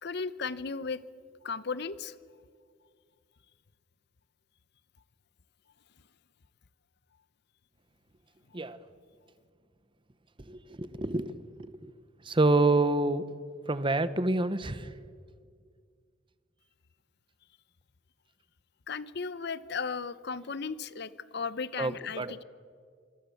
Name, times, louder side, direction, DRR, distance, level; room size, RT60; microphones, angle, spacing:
voice 1, 0.0-1.0 1.4-2.1 18.9-22.4, left 5 dB, 60° left, 16 dB, 0.8 m, -35 dB
voice 2, 10.5-11.3 11.8-11.9 12.3-13.2 13.7-14.9 21.8-21.9 22.2-22.3, right 2 dB, 25° right, 14 dB, 1.0 m, -27 dB
26.0 x 22.0 x 7.1 m, 2.1 s
head